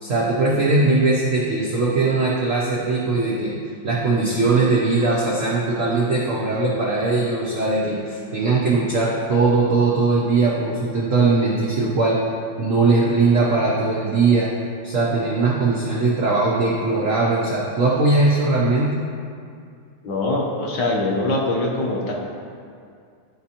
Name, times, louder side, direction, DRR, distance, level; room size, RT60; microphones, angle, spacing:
voice 1, 0.0-3.5 3.8-12.2 12.6-14.5 14.8-19.1, right 3 dB, 90° right, -4 dB, 0.7 m, -20 dB
voice 2, 20.0-22.1, left 2 dB, 65° left, -2 dB, 1.3 m, -23 dB
11.5 x 4.2 x 2.9 m, 2.3 s
omnidirectional pair, 2.4 m